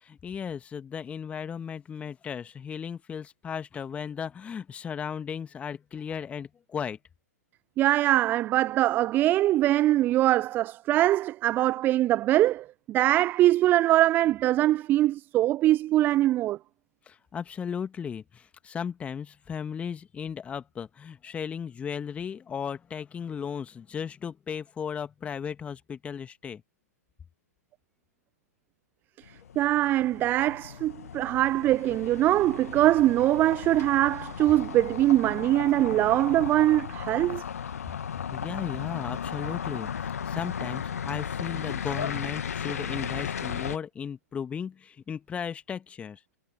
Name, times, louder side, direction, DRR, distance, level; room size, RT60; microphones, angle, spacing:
voice 1, 0.0-7.0 17.1-26.6 38.3-46.4, left 7 dB, 15° left, 1.8 m, -36 dB
voice 2, 7.8-16.6 29.6-37.4, right 14 dB, 20° right, 0.5 m, -23 dB
sound 1, 29.2-43.8, left 7 dB, 60° left, 2.1 m, -35 dB
figure-of-eight pair, 110°, 9 cm